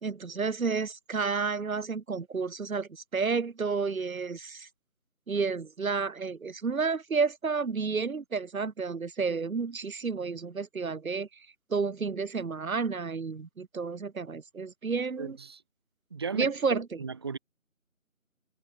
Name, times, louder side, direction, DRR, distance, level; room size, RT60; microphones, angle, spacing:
voice 1, 0.0-4.7 5.3-11.3 11.7-15.4 16.3-16.9, right 5 dB, 75° right, 1.0 m, -31 dB
voice 2, 15.2-15.6 16.1-17.4, right 5 dB, 20° right, 2.9 m, -36 dB
figure-of-eight pair, 165°, 42 cm